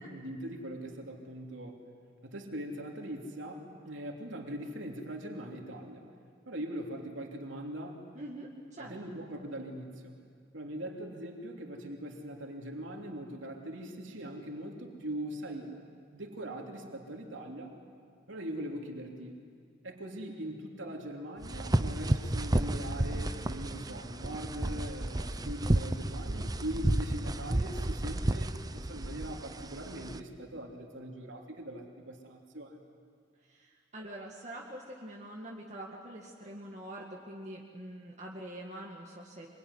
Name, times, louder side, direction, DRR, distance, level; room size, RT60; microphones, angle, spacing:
voice 1, 0.1-1.8 2.2-6.1 6.4-8.1 8.8-10.2 10.5-15.7 16.1-17.7 18.3-19.4 19.8-32.8, right 1 dB, 80° right, 1 dB, 3.1 m, -41 dB
voice 2, 8.1-8.9 33.5-39.5, right 1 dB, 35° right, -2 dB, 2.1 m, -45 dB
sound 1, 21.4-30.2, right 1 dB, 20° right, 0.7 m, -32 dB
25.5 x 23.5 x 9.8 m, 2.1 s
head